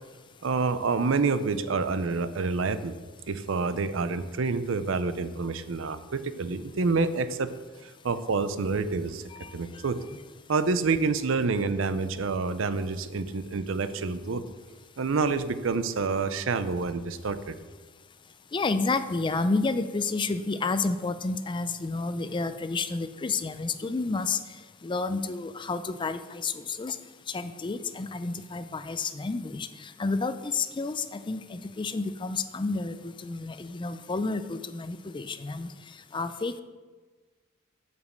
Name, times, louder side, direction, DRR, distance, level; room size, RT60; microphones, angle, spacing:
voice 1, 0.4-2.9 3.3-7.5 7.8-9.2 9.5-10.0 10.5-14.4 15.0-17.6, right 4 dB, 70° right, 12 dB, 0.5 m, -28 dB
voice 2, 18.5-24.4 24.8-27.0 27.3-35.7 36.1-36.6, left 3 dB, 25° left, 11 dB, 0.4 m, -30 dB
7.9 x 5.2 x 6.5 m, 1.3 s
head